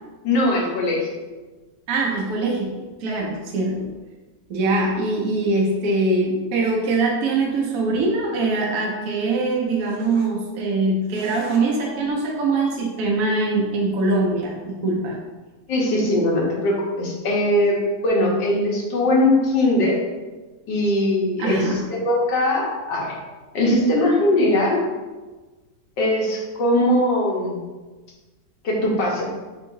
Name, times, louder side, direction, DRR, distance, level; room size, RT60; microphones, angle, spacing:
voice 1, 0.2-1.1 15.7-20.0 20.7-23.2 23.5-24.8 26.0-27.6 28.6-29.2, left 1 dB, 75° left, -2 dB, 1.6 m, -20 dB
voice 2, 1.9-3.9 4.5-15.2 21.4-21.8, right 2 dB, 65° right, -2 dB, 0.9 m, -23 dB
4.6 x 3.6 x 2.6 m, 1.2 s
omnidirectional pair, 2.0 m